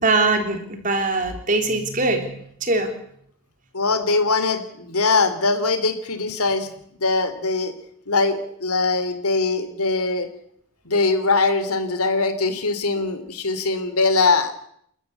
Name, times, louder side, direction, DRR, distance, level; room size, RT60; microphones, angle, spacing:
voice 1, 0.0-2.9, right 3 dB, 35° right, 5 dB, 3.8 m, -22 dB
voice 2, 3.7-6.7 7.0-7.7 8.1-10.3 10.8-14.5, left 3 dB, 85° left, 10 dB, 3.1 m, -21 dB
29.5 x 13.5 x 8.2 m, 0.70 s
head